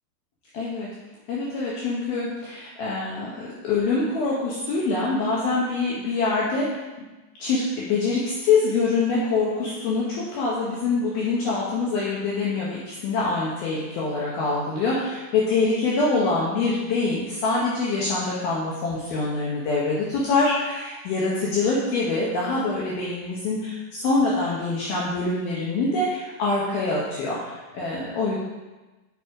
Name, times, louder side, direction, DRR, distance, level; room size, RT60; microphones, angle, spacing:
voice 1, 0.5-0.9 1.3-6.8 7.4-28.4, left 3 dB, 75° left, -6 dB, 2.3 m, -25 dB
6.9 x 6.3 x 4.8 m, 1.2 s
omnidirectional pair, 5.7 m